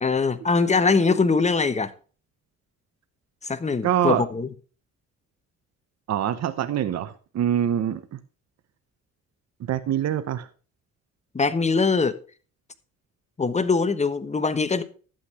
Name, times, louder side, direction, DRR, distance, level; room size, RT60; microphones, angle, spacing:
voice 1, 0.0-1.9 3.4-4.5 11.3-12.2 13.4-14.8, left 4 dB, 25° left, 1.1 m, -22 dB
voice 2, 3.8-4.2 6.1-8.2 9.7-10.5, right 10 dB, 60° right, 0.9 m, -24 dB
11.5 x 8.2 x 4.3 m
cardioid pair, 90°, 30 cm